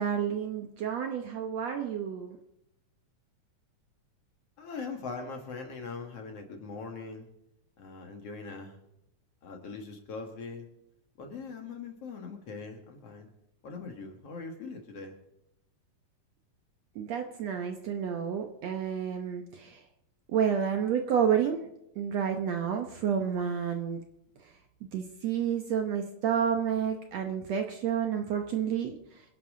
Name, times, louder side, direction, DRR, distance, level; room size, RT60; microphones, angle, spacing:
voice 1, 0.0-2.4 17.0-19.8 20.3-24.0 24.9-29.0, right 8 dB, 65° right, 4 dB, 1.8 m, -30 dB
voice 2, 4.6-7.3 7.8-8.8 9.4-10.7 11.2-13.3 13.6-15.2, left 4 dB, 50° left, 3 dB, 2.5 m, -41 dB
26.5 x 11.0 x 3.8 m, 0.84 s
omnidirectional pair, 3.9 m